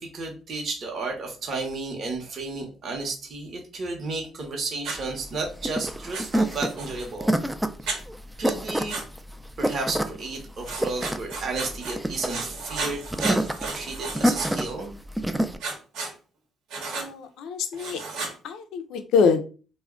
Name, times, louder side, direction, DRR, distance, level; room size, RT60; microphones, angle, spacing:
voice 1, 0.0-7.3 8.4-9.0 9.6-14.9, right 3 dB, 55° right, 1 dB, 0.8 m, -32 dB
Writing, 4.8-5.0 6.1-7.1 7.9-8.0 8.9-9.0 10.6-12.0 12.2-14.7 15.6-16.1 16.7-17.1 17.7-18.3, right 3 dB, 90° right, 0.9 m, -33 dB
sound 1, 5.0-15.6, right 1 dB, 5° right, 0.3 m, -28 dB
voice 2, 16.9-18.0 18.4-19.4, left 5 dB, 85° left, 7 dB, 0.4 m, -24 dB
2.3 x 2.1 x 3.6 m, 0.36 s
cardioid pair, 90°, 0 cm